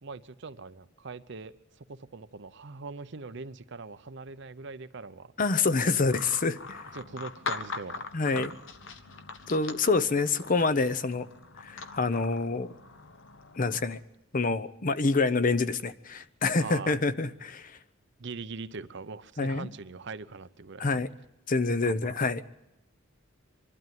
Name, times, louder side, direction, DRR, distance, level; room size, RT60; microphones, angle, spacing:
voice 1, 0.0-5.3 5.8-5.9 6.9-8.0 8.3-8.5 16.6-17.0 18.2-21.0 21.8-22.1, right 4 dB, 60° right, 12 dB, 0.7 m, -42 dB
voice 2, 5.4-6.9 8.1-8.5 9.5-11.3 11.6-12.7 13.6-14.0 14.3-17.8 19.4-19.7 20.8-21.1 21.5-22.4, left 3 dB, 40° left, 13 dB, 0.7 m, -27 dB
sound 1, 6.1-14.0, left 4 dB, 70° left, 1.2 m, -42 dB
24.5 x 12.0 x 9.3 m, 0.90 s
head